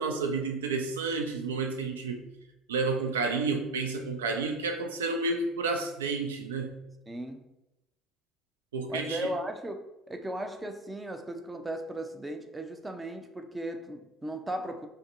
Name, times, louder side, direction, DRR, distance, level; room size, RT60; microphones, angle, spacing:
voice 1, 0.0-2.2 2.7-6.8 8.7-9.3, right 4 dB, 80° right, 0.4 m, -30 dB
voice 2, 7.1-7.5 8.9-14.9, right 1 dB, 15° right, 0.5 m, -37 dB
5.0 x 2.0 x 2.5 m
figure-of-eight pair, 55°, 0 cm